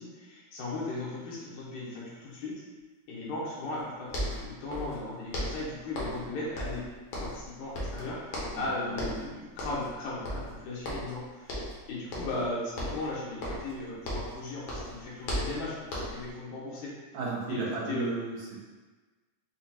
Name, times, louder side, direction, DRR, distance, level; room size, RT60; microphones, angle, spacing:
voice 1, 0.0-2.6 3.1-6.9 7.2-16.9 17.5-18.1, left 2 dB, 90° left, -6 dB, 2.4 m, -37 dB
sound 1, 3.8-3.9 4.1-5.0 5.3-6.3 6.6-7.5 7.7-8.7 8.9-9.3 9.6-9.9 10.2-11.2 11.5-11.8 12.1-12.5 12.8-14.4 14.7-16.3, equal, 70° left, 1.2 m, -36 dB
voice 2, 8.6-9.0 17.1-18.6, right 3 dB, 80° right, -5 dB, 2.2 m, -35 dB
5.5 x 2.2 x 2.8 m, 1.3 s
omnidirectional pair, 3.3 m